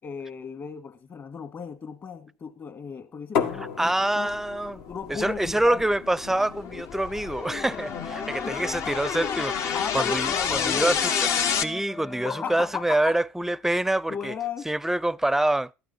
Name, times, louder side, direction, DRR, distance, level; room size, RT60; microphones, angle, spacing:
voice 1, 0.0-4.3 4.9-5.8 8.4-8.7 9.7-11.0 12.2-13.2 14.1-14.7, left 6 dB, 40° left, 2.2 m, -35 dB
sound 1, 3.3-9.0, left 6 dB, 75° left, 1.7 m, -36 dB
voice 2, 3.6-4.8 5.1-11.0 11.5-14.3 14.7-15.7, right 1 dB, 5° right, 0.5 m, -26 dB
sound 2, 4.7-11.6, left 7 dB, 60° left, 1.0 m, -29 dB
Wind instrument woodwind instrument, 7.5-12.9, left 4 dB, 25° left, 0.8 m, -39 dB
13.0 x 9.1 x 4.2 m
hypercardioid pair, 75°, 6 cm